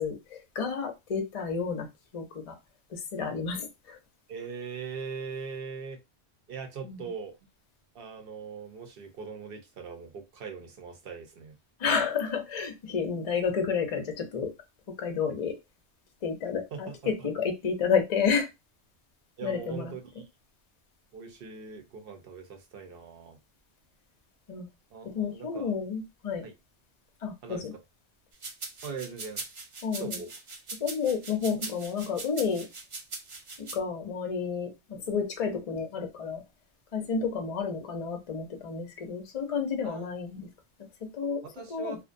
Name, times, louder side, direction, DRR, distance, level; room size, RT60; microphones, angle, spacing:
voice 1, 0.0-1.9 2.1-2.6 2.9-4.0 6.8-7.1 11.8-14.5 15.0-15.5 16.2-18.5 19.4-19.9 24.5-24.7 25.0-26.4 27.2-27.7 29.8-30.2 30.7-32.7 33.6-36.4 36.9-40.5 41.0-41.4 41.7-42.0, left 6 dB, 45° left, 0.5 m, -30 dB
voice 2, 4.3-6.0 6.5-7.3 7.9-11.6 16.7-17.3 19.4-20.2 21.1-23.4 24.9-25.8 26.4-26.5 27.4-27.7 28.8-29.4 30.0-30.3 39.8-40.1 41.4-42.0, right 5 dB, 60° right, 0.8 m, -41 dB
sound 1, 28.4-33.7, right 3 dB, 45° right, 0.4 m, -40 dB
2.5 x 2.1 x 2.5 m
omnidirectional pair, 1.1 m